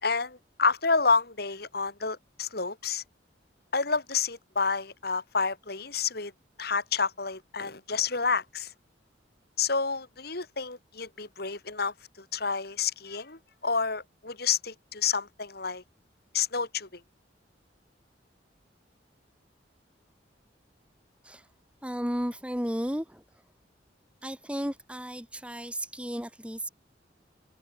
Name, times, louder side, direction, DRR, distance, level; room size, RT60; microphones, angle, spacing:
voice 1, 0.0-3.0 3.7-6.3 6.6-8.7 9.6-11.9 12.3-15.8 16.3-17.0, left 5 dB, 60° left, 3.8 m, -29 dB
voice 2, 21.8-23.2 24.2-26.7, equal, 5° right, 7.7 m, -33 dB
head